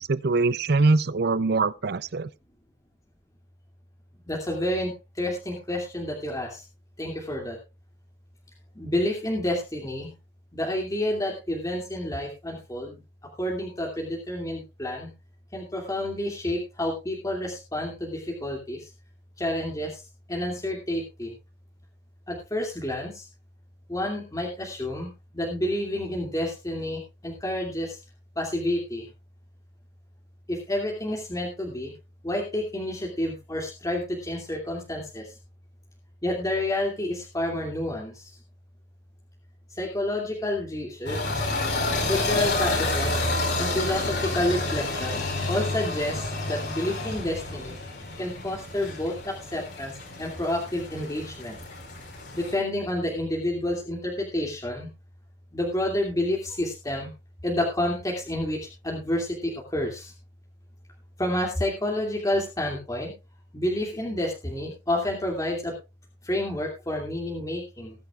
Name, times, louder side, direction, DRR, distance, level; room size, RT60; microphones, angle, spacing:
voice 1, 0.0-2.3, right 3 dB, 60° right, 0.6 m, -23 dB
voice 2, 4.3-4.9 5.2-6.6 7.0-7.6 8.8-10.1 10.5-13.0 13.4-15.1 15.5-18.8 19.4-19.9 20.3-21.3 22.3-23.1 23.9-25.1 25.3-27.9 28.4-29.0 30.5-31.9 32.2-35.2 36.2-38.1 39.8-41.2 42.1-43.1 43.6-45.2 45.5-47.7 48.2-49.9 50.2-51.6 52.3-54.9 55.5-57.1 57.4-58.6 58.8-60.1 61.2-63.1 63.5-65.7 66.3-67.9, left 1 dB, 20° left, 2.7 m, -29 dB
sound 1, 41.1-52.5, left 2 dB, 65° left, 5.0 m, -29 dB
19.5 x 10.5 x 2.4 m
head